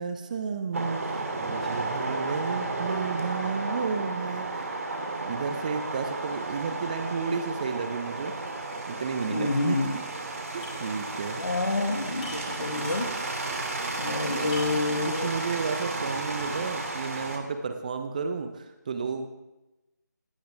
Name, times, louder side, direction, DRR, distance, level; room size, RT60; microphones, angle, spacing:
voice 1, 0.0-4.7 5.1-8.3 8.9-10.0 10.5-11.4 14.2-14.6 15.0-19.3, right 5 dB, 25° right, 8 dB, 1.0 m, -32 dB
sound 1, 0.7-17.4, right 2 dB, 50° right, 3.0 m, -33 dB
voice 2, 9.3-9.9 11.4-13.1 14.0-15.3, left 3 dB, 65° left, 2 dB, 2.1 m, -28 dB
sound 2, 10.6-10.9 11.2-11.3 12.2-13.3 14.5-15.0 15.5-15.6 16.4-16.8, left 2 dB, 25° left, 3.0 m, -43 dB
19.0 x 17.5 x 3.6 m, 0.98 s
figure-of-eight pair, 155°, 10 cm